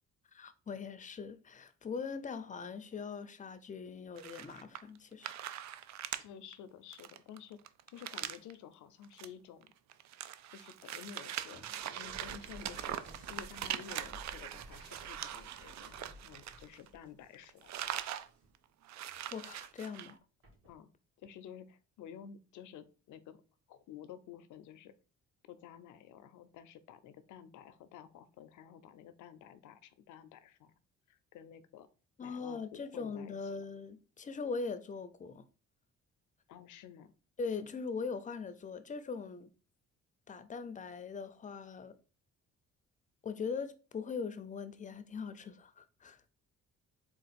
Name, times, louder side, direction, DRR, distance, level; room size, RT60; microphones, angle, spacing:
voice 1, 0.3-5.4 19.3-20.2 32.2-35.4 37.4-39.5 40.3-41.9 43.2-46.2, left 5 dB, 25° left, 0.5 m, -41 dB
sound 1, 4.2-5.0 5.2-6.2 6.5-6.6 6.9-8.5 9.0-9.3 9.6-17.0 17.3-18.3 18.6-18.7 18.8-20.1, right 11 dB, 65° right, 0.4 m, -42 dB
voice 2, 6.2-7.6 7.9-9.7 10.5-13.0 13.3-17.7 20.6-20.9 21.2-23.4 23.7-24.9 25.5-30.7 31.1-31.9 32.2-33.5 36.5-37.1, left 9 dB, 80° left, 0.6 m, -52 dB
sound 2, 11.5-18.5 18.9-19.6 20.4-20.7, equal, 50° right, 1.9 m, -56 dB
3.8 x 2.4 x 4.2 m
cardioid pair, 90°, 30 cm